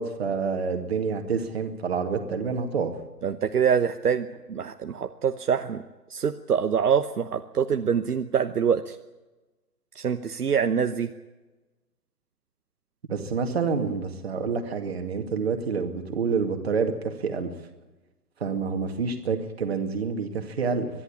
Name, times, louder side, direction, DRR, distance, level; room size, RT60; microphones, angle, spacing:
voice 1, 0.0-2.9 13.1-17.5 18.4-20.9, right 5 dB, 40° right, 6 dB, 2.3 m, -28 dB
voice 2, 3.2-5.8 6.1-9.0 9.9-11.1, right 7 dB, 65° right, 7 dB, 1.1 m, -25 dB
23.5 x 11.5 x 10.0 m, 1.1 s
hypercardioid pair, 170°, 49 cm